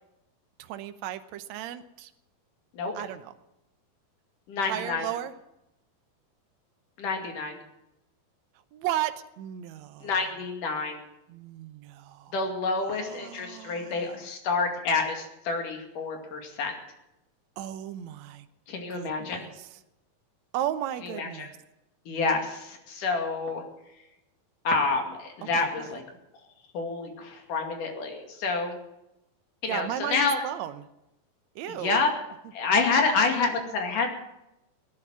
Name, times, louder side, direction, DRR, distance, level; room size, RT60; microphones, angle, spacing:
voice 1, 0.6-2.1 2.9-3.3 4.7-5.3 8.7-10.1 11.3-12.3 12.9-14.3 17.6-18.5 18.9-19.8 20.5-21.6 25.4-25.9 29.7-30.9 31.5-32.0, right 11 dB, 75° right, 10 dB, 1.7 m, -35 dB
voice 2, 4.5-5.0 7.0-7.6 10.0-11.1 12.3-16.7 18.7-19.5 21.0-21.5 22.1-23.6 24.7-26.0 26.7-28.8 29.6-30.4 31.8-32.1 32.5-34.1, left 4 dB, 60° left, 3 dB, 3.8 m, -28 dB
18.0 x 10.5 x 7.5 m, 0.88 s
omnidirectional pair, 4.3 m